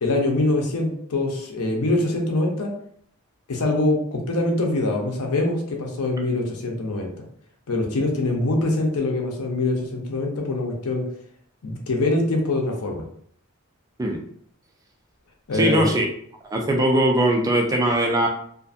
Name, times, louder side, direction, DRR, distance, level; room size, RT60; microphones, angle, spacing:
voice 1, 0.0-2.7 3.5-7.1 7.7-11.1 11.6-13.0 15.5-15.9, left 2 dB, 85° left, 1 dB, 0.6 m, -24 dB
voice 2, 15.5-16.1 16.5-18.3, right 1 dB, 15° right, 1 dB, 0.4 m, -20 dB
2.5 x 2.5 x 2.4 m, 0.64 s
head